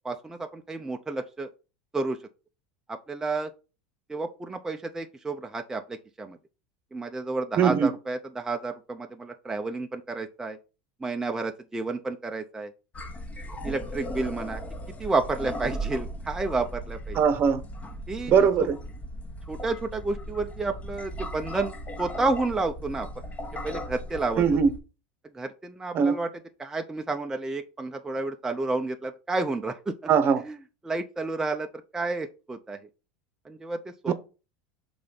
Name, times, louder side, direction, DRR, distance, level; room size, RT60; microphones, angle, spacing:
voice 1, 0.0-1.5 1.9-2.2 2.9-3.5 4.1-6.4 6.9-10.6 11.0-12.7 13.6-14.6 15.0-17.2 18.1-18.3 19.5-21.7 22.0-23.1 23.6-24.4 25.3-26.3 26.6-29.9 30.4-30.6 30.8-31.7 31.9-32.8 33.5-34.1, right 3 dB, 10° right, 0.5 m, -30 dB
voice 2, 7.6-7.9 17.2-17.6 18.3-18.8 24.4-24.7 25.9-26.2 30.1-30.4 34.1-34.2, right 6 dB, 40° right, 0.9 m, -20 dB
sound 1, 12.9-24.8, equal, 25° left, 1.1 m, -37 dB
5.4 x 3.9 x 5.2 m
supercardioid pair, 115°, 6 cm